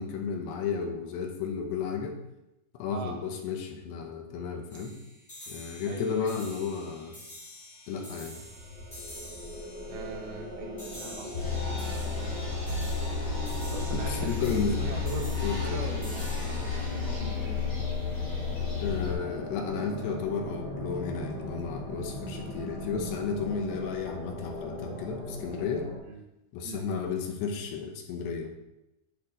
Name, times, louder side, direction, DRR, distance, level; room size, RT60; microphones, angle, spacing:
voice 1, 0.0-2.2 2.7-5.0 5.5-7.2 7.9-8.4 13.9-14.8 15.4-15.8 18.8-25.9 26.5-28.5, left 5 dB, 80° left, 3 dB, 3.2 m, -33 dB
sound 1, 4.7-18.2, equal, 10° left, 2.9 m, -48 dB
voice 2, 5.9-6.3 9.9-11.4 13.6-17.6 26.0-26.2 26.6-26.9, right 3 dB, 70° right, 1 dB, 3.0 m, -40 dB
sound 2, 8.0-26.0, equal, 25° right, 2.8 m, -40 dB
sound 3, 11.3-19.1, left 5 dB, 30° left, 3.0 m, -32 dB
10.5 x 7.2 x 3.9 m, 0.90 s
omnidirectional pair, 4.9 m